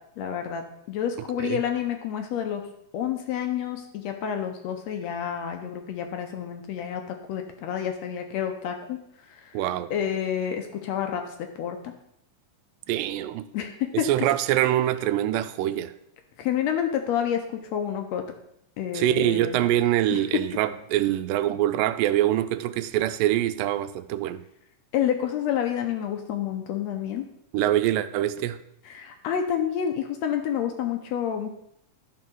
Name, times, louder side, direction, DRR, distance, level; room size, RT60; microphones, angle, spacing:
voice 1, 0.2-2.7 2.9-9.0 9.3-9.6 9.9-11.9 13.5-14.3 16.4-18.2 18.8-19.6 20.1-20.2 24.9-27.2 28.9-31.5, left 9 dB, 75° left, 5 dB, 1.6 m, -29 dB
voice 2, 9.5-9.9 12.9-13.5 13.9-15.9 18.9-24.4 27.5-28.6, right 13 dB, 90° right, 12 dB, 2.2 m, -24 dB
11.0 x 3.8 x 6.2 m, 0.76 s
omnidirectional pair, 3.9 m